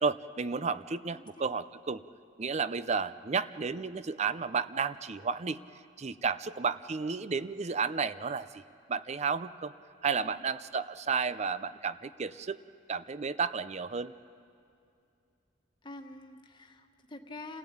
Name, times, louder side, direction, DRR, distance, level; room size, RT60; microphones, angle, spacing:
voice 1, 0.0-2.0 2.4-5.6 6.0-8.6 8.9-9.7 10.0-12.6 12.9-14.1, right 5 dB, 35° right, 14 dB, 0.5 m, -32 dB
voice 2, 1.1-1.5 3.7-4.0 10.2-10.4 15.8-17.6, left 2 dB, 25° left, 4 dB, 1.5 m, -47 dB
28.5 x 15.5 x 8.6 m, 2.5 s
head